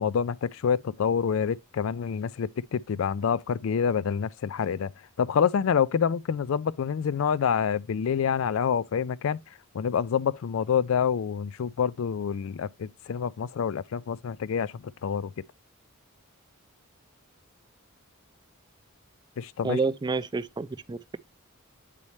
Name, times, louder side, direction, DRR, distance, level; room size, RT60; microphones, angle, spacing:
voice 1, 0.0-4.9 5.2-9.4 9.7-15.3 19.4-19.8, left 7 dB, 70° left, 0.4 m, -27 dB
voice 2, 19.6-21.2, right 4 dB, 20° right, 0.3 m, -29 dB
8.4 x 4.2 x 3.1 m
head